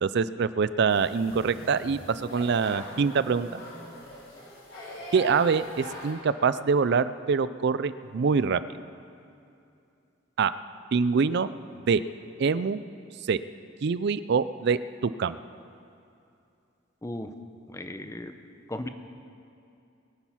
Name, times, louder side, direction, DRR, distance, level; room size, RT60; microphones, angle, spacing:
voice 1, 0.0-3.6 5.1-8.6 10.4-10.5 10.9-11.5 11.9-12.0 12.4-12.8 13.3-13.4 13.8-15.4, right 5 dB, 60° right, 15 dB, 0.4 m, -25 dB
sound 1, 0.9-6.1, left 1 dB, 85° left, 4.8 m, -42 dB
voice 2, 17.0-17.3 17.7-18.3 18.7-18.9, left 1 dB, 15° left, 8 dB, 0.8 m, -36 dB
22.0 x 9.2 x 5.7 m, 2.6 s
head